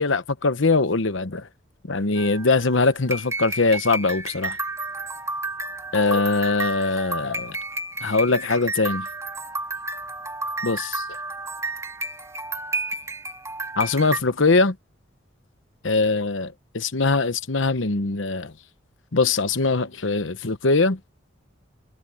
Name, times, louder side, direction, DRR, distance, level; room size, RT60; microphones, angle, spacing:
voice 1, 0.0-1.5 1.9-4.6 5.9-7.6 8.0-9.1 10.6-11.0 13.8-14.8 15.8-18.5 19.1-21.0, left 3 dB, 75° left, 1.1 m, -22 dB
sound 1, 2.2-14.2, right 2 dB, 15° right, 3.2 m, -31 dB
head